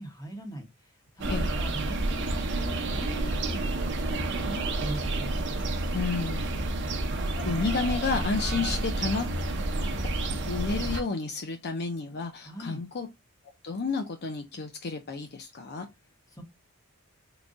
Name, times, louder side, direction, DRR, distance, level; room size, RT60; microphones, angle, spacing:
voice 1, 0.0-5.4 12.4-12.8 16.3-16.4, right 1 dB, 15° left, 1.0 m, -40 dB
sound 1, 1.2-11.0, right 2 dB, 55° right, 0.8 m, -30 dB
voice 2, 5.9-6.5 7.4-9.3 9.8-9.9 10.5-13.1 13.6-15.9, left 4 dB, 45° left, 0.5 m, -31 dB
3.8 x 2.3 x 3.7 m
head